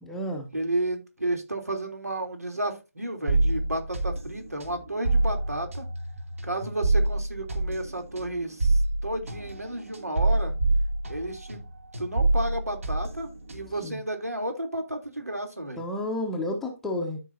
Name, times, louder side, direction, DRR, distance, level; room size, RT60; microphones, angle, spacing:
voice 1, 0.0-0.5 13.8-14.0 15.8-17.2, left 1 dB, 5° left, 0.9 m, -31 dB
voice 2, 0.5-5.9 6.4-10.5 11.1-11.7 12.0-15.8, right 1 dB, 80° right, 3.2 m, -32 dB
sound 1, 3.3-11.7 11.9-13.9, right 2 dB, 60° right, 2.9 m, -26 dB
13.0 x 5.4 x 2.7 m
figure-of-eight pair, 150°, 8 cm